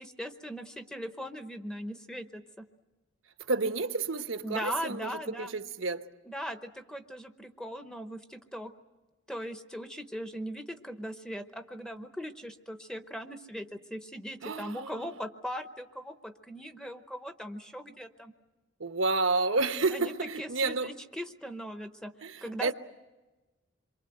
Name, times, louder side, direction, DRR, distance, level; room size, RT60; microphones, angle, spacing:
voice 1, 0.0-2.7 4.4-5.5 6.3-8.7 9.3-18.3 19.9-20.1 20.4-22.1 22.4-22.7, equal, 5° left, 0.9 m, -39 dB
voice 2, 3.4-6.1 14.4-15.1 18.8-20.9 22.2-22.7, right 3 dB, 75° right, 1.0 m, -30 dB
27.0 x 23.5 x 7.9 m
head